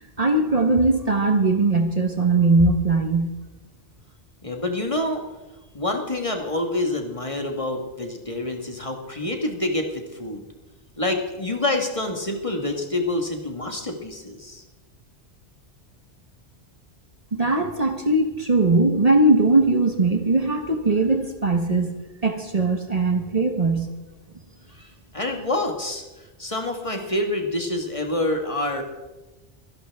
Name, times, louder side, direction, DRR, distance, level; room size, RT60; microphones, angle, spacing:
voice 1, 0.2-3.3 17.3-23.9, right 2 dB, 35° right, 5 dB, 1.1 m, -20 dB
voice 2, 4.4-5.2 5.7-10.4 11.0-14.6 25.1-26.0 26.4-28.8, left 2 dB, 30° left, 3 dB, 1.4 m, -27 dB
24.5 x 11.0 x 3.4 m, 1.1 s
omnidirectional pair, 1.2 m